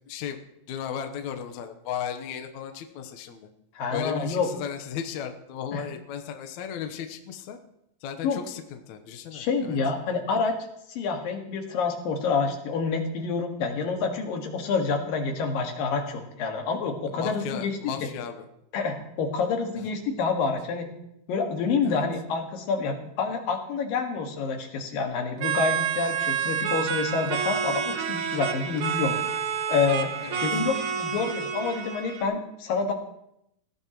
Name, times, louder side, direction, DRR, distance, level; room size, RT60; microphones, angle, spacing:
voice 1, 0.1-0.4 0.7-3.5 3.9-7.6 8.0-9.8 17.1-18.4 21.8-22.0 30.2-30.6, left 8 dB, 70° left, 6 dB, 2.2 m, -35 dB
voice 2, 3.8-4.5 5.7-5.9 8.2-8.4 9.3-10.6 10.9-18.1 18.7-20.9 21.3-29.2 29.7-30.1 30.4-32.9, left 4 dB, 90° left, 3 dB, 3.5 m, -28 dB
sound 1, 25.4-32.2, right 7 dB, 75° right, 1.2 m, -29 dB
20.0 x 16.0 x 3.0 m, 0.80 s
omnidirectional pair, 3.9 m